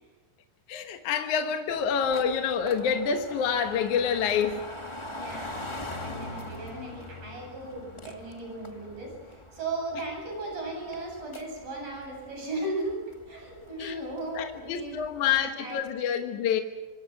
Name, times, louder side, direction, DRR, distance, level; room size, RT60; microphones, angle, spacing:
voice 1, 0.7-4.6 5.8-5.9 13.8-14.0 14.4-16.6, left 7 dB, 60° left, 5 dB, 2.4 m, -27 dB
sound 1, 1.7-15.5, left 1 dB, 15° left, 1.0 m, -43 dB
voice 2, 5.1-15.0 15.2-15.9, right 2 dB, 60° right, 1 dB, 9.8 m, -37 dB
26.5 x 25.0 x 6.2 m, 1.2 s
omnidirectional pair, 4.5 m